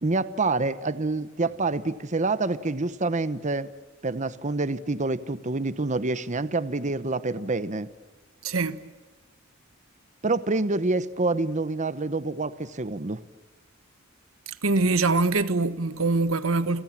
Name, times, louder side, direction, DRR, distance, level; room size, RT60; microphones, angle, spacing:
voice 1, 0.0-3.7 4.0-7.9 10.2-13.2, right 3 dB, 35° right, 0.9 m, -27 dB
voice 2, 8.4-8.8 14.5-16.8, right 3 dB, 85° right, 1.4 m, -24 dB
28.5 x 28.0 x 7.4 m
head